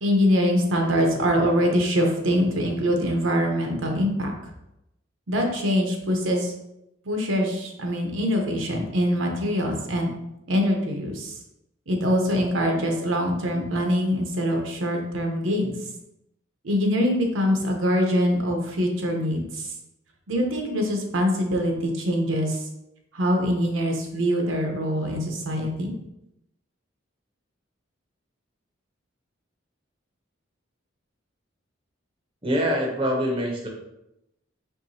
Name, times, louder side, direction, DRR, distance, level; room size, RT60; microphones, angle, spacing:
voice 1, 0.0-4.3 5.3-6.5 7.0-10.1 10.5-11.4 11.9-15.7 16.6-19.7 20.3-22.7 23.1-25.9, equal, 75° right, 2 dB, 0.8 m, -24 dB
voice 2, 32.4-33.7, equal, 25° right, -1 dB, 0.7 m, -24 dB
4.7 x 3.4 x 2.7 m, 0.85 s
head